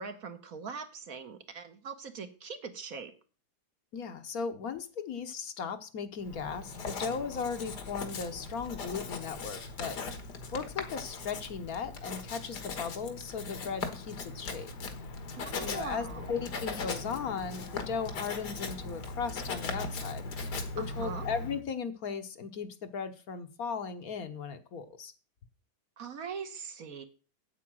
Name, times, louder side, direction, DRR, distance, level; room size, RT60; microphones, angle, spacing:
voice 1, 0.0-3.1 15.4-16.4 20.8-21.3 26.0-27.0, right 6 dB, 60° right, 7 dB, 1.5 m, -41 dB
voice 2, 3.9-10.0 10.5-14.7 15.6-20.3 20.7-25.1, left 6 dB, 60° left, 8 dB, 1.4 m, -37 dB
Writing, 6.2-21.6, left 4 dB, 80° left, 2.0 m, -39 dB
8.4 x 8.3 x 6.2 m, 0.36 s
omnidirectional pair, 1.8 m